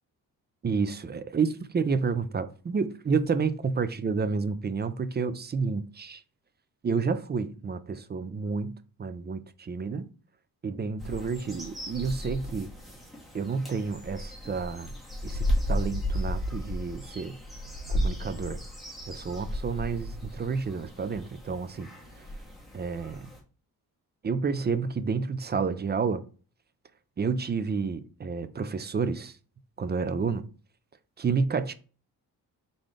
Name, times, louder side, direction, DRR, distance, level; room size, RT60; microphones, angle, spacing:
voice 1, 0.6-6.2 6.8-10.1 10.6-12.7 13.3-14.9 15.2-17.4 17.9-18.6 19.1-21.9 22.7-23.3 24.2-26.2 27.2-29.4 29.8-30.5 31.2-31.7, right 5 dB, 30° right, 0.4 m, -30 dB
sound 1, 11.0-23.4, equal, ahead, 1.2 m, -34 dB
3.8 x 3.8 x 3.3 m
cardioid pair, 90°, 38 cm